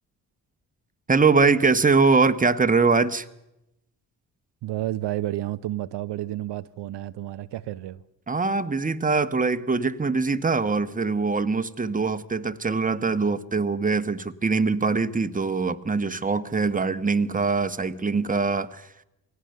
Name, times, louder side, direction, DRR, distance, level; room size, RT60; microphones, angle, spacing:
voice 1, 1.1-3.3 8.3-18.9, right 4 dB, 20° right, 1.2 m, -23 dB
voice 2, 4.6-8.0, right 14 dB, 65° right, 0.7 m, -31 dB
23.0 x 17.5 x 6.7 m
hypercardioid pair, 45°, 45 cm